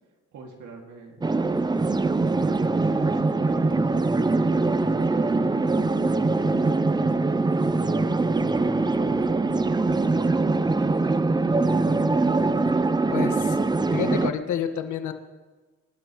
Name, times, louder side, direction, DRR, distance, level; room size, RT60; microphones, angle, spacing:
voice 1, 0.3-1.2 1.7-1.9 2.3-4.0 4.5-6.9 7.5-9.5 9.9-12.1, right 3 dB, 70° right, 0 dB, 2.4 m, -44 dB
sound 1, 1.2-14.3, right 3 dB, 15° right, 0.6 m, -23 dB
voice 2, 13.1-13.6 13.9-15.1, left 8 dB, 75° left, 7 dB, 1.6 m, -29 dB
28.0 x 12.5 x 3.2 m, 1.3 s
cardioid pair, 90°, 30 cm